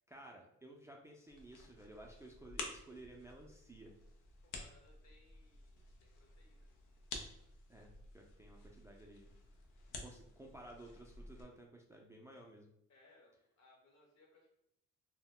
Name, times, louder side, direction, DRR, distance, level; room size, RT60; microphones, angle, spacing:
voice 1, 0.1-3.9 7.7-9.3 10.0-12.7, right 1 dB, 10° right, -1 dB, 0.3 m, -55 dB
sound 1, 1.3-11.4, left 3 dB, 90° left, 0.5 m, -52 dB
voice 2, 4.4-6.7 12.9-14.5, left 2 dB, 60° left, -1 dB, 1.0 m, -67 dB
2.1 x 2.1 x 3.6 m, 0.78 s
cardioid pair, 90°, 30 cm